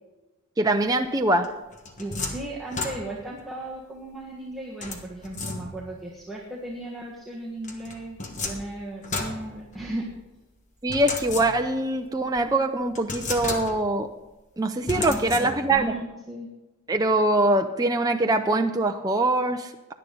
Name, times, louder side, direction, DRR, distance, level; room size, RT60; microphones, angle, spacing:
voice 1, 0.6-1.5 10.8-14.1 14.6-15.9 16.9-19.9, right 2 dB, 15° right, 4 dB, 0.5 m, -23 dB
sound 1, 1.4-3.4 4.8-6.0 7.6-10.2 10.9-11.9 12.4-12.5 13.0-14.0 14.9-15.9, left 3 dB, 35° left, 1.3 m, -34 dB
voice 2, 2.0-8.2 8.4-10.0 15.0-16.5, right 1 dB, ahead, -3 dB, 1.4 m, -36 dB
17.5 x 10.5 x 3.9 m, 1.1 s
head